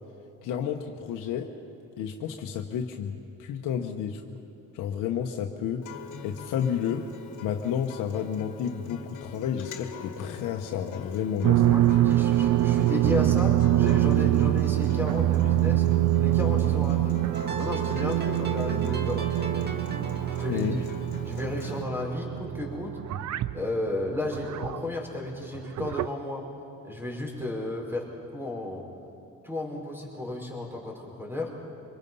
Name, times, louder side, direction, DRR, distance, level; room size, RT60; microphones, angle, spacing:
voice 1, 0.4-1.5 2.0-4.4 4.7-5.8 6.2-7.1 7.4-11.7 20.5-20.8, left 8 dB, 85° left, 3 dB, 1.1 m, -31 dB
Acoustic guitar, 5.8-21.8, left 6 dB, 70° left, 1.8 m, -43 dB
sound 1, 11.4-24.9 25.5-26.1, right 14 dB, 60° right, 0.6 m, -24 dB
voice 2, 11.7-15.9 16.2-17.2 17.6-19.7 20.4-20.7 21.2-23.0 23.5-26.5 26.8-28.1 28.3-28.8 29.4-31.5, left 2 dB, 5° right, 0 dB, 5.1 m, -33 dB
sound 2, 17.3-22.4, right 3 dB, 30° right, 2.2 m, -39 dB
24.5 x 21.5 x 5.5 m, 2.7 s
cardioid pair, 95°, 31 cm